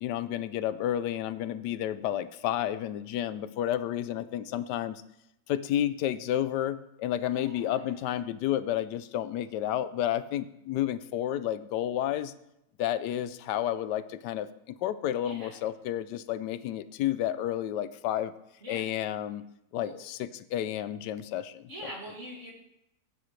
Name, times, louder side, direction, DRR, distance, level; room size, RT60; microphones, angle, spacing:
voice 1, 0.0-5.0 5.5-12.3 12.8-18.3 18.7-19.4 19.7-21.7, left 11 dB, 85° left, 14 dB, 1.2 m, -31 dB
voice 2, 7.3-8.2 15.2-15.6 18.6-18.9 19.8-19.9 21.7-22.5, equal, 45° right, -2 dB, 2.7 m, -44 dB
14.0 x 8.8 x 3.2 m, 0.82 s
omnidirectional pair, 1.8 m